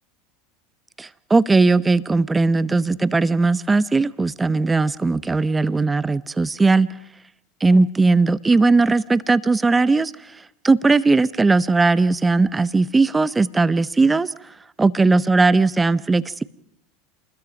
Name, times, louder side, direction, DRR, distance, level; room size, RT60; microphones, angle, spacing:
voice 1, 1.0-6.9 7.6-10.1 10.6-14.3 14.8-16.4, right 3 dB, 15° right, 16 dB, 0.9 m, -18 dB
27.5 x 21.0 x 5.3 m, 0.68 s
hypercardioid pair, 90°, 0 cm